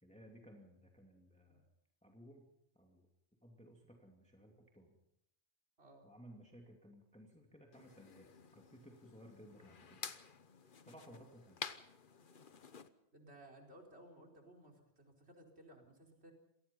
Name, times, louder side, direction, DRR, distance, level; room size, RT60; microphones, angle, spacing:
voice 1, 0.0-1.6 2.0-2.5 2.7-3.1 3.4-5.0 6.0-10.2 10.8-11.6, equal, 5° left, 0 dB, 2.6 m, -59 dB
voice 2, 5.8-6.1 11.0-11.2 13.1-16.3, right 1 dB, 70° right, 1 dB, 4.6 m, -59 dB
sound 1, 7.7-12.9, left 5 dB, 50° left, 1.2 m, -51 dB
27.0 x 19.0 x 5.5 m, 0.78 s
omnidirectional pair, 1.1 m